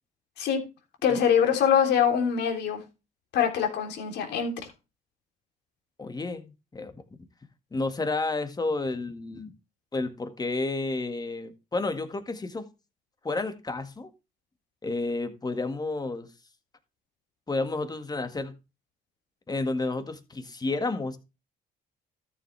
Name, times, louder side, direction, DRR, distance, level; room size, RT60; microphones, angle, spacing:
voice 1, 1.0-2.8 3.3-4.7, left 8 dB, 80° left, 3.4 m, -24 dB
voice 2, 6.0-6.9 7.7-9.5 9.9-12.7 13.2-14.1 14.8-16.3 17.5-18.5 19.5-21.2, left 3 dB, 25° left, 1.9 m, -31 dB
13.5 x 7.2 x 3.4 m
cardioid pair, 90°, 17 cm